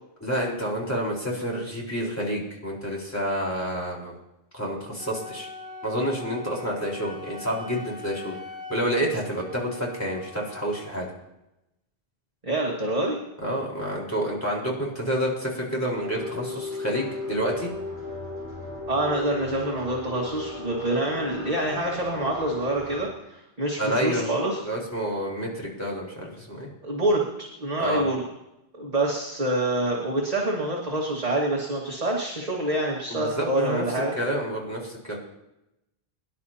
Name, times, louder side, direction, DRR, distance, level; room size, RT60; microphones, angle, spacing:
voice 1, 0.2-4.1 4.5-5.5 5.8-8.4 8.7-11.1 13.4-17.7 23.8-24.3 24.6-26.7 27.8-28.0 33.1-33.8 34.2-35.2, equal, 15° left, -4 dB, 4.3 m, -29 dB
Wind instrument woodwind instrument, 5.0-11.0, left 3 dB, 55° left, 2.3 m, -42 dB
voice 2, 12.4-13.2 18.9-24.6 26.8-27.3 27.6-28.2 28.8-34.1, right 1 dB, 40° right, -3 dB, 2.0 m, -26 dB
sound 1, 15.9-23.1, left 3 dB, 20° right, 4.4 m, -36 dB
24.0 x 11.0 x 2.9 m, 0.90 s
omnidirectional pair, 1.1 m